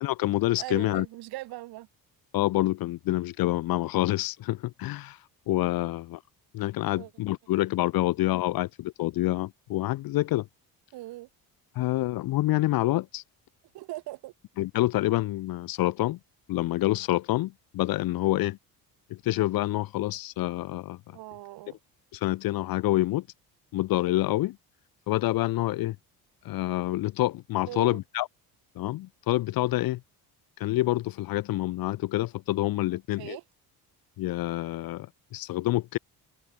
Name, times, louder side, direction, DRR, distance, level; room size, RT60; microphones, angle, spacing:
voice 1, 0.0-1.0 2.3-5.2 5.5-6.2 6.5-10.5 11.7-13.2 14.6-16.2 16.5-18.6 19.1-21.0 22.1-23.3 23.7-24.6 25.1-26.0 26.4-28.3 28.7-30.0 30.6-33.4 34.2-36.0, left 17 dB, 65° left, 1.3 m, -27 dB
voice 2, 0.6-1.9 5.8-5.9 6.9-7.1 10.9-11.3 13.7-14.3 21.1-21.8 27.7-28.0 33.2-33.4, right 18 dB, 70° right, 1.8 m, -40 dB
cardioid pair, 175°, 38 cm